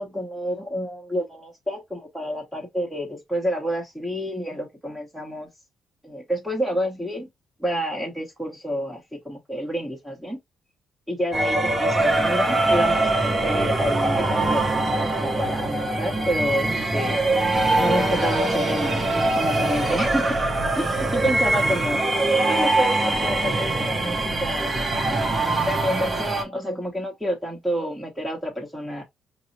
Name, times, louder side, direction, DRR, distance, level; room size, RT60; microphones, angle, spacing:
voice 1, 0.0-5.5 6.0-7.3 7.6-10.4 11.1-17.2 17.8-20.4 20.7-22.0 22.5-25.0 25.6-29.0, equal, 5° right, 1.1 m, -29 dB
sound 1, 11.3-26.4, right 2 dB, 30° right, 0.8 m, -23 dB
4.6 x 2.0 x 2.7 m
cardioid pair, 90°, 0 cm